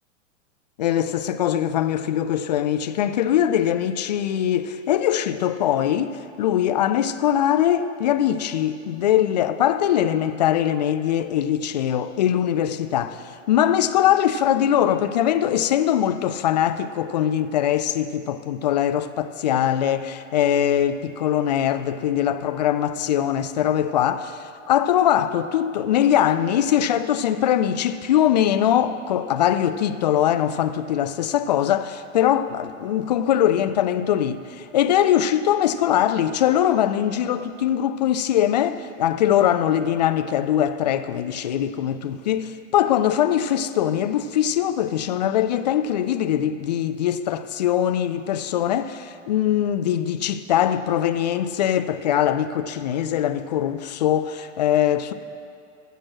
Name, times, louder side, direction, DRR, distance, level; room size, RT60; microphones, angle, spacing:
voice 1, 0.8-55.1, left 10 dB, 35° left, 0.4 m, -22 dB
14.5 x 6.2 x 6.0 m
figure-of-eight pair, 105°, 39 cm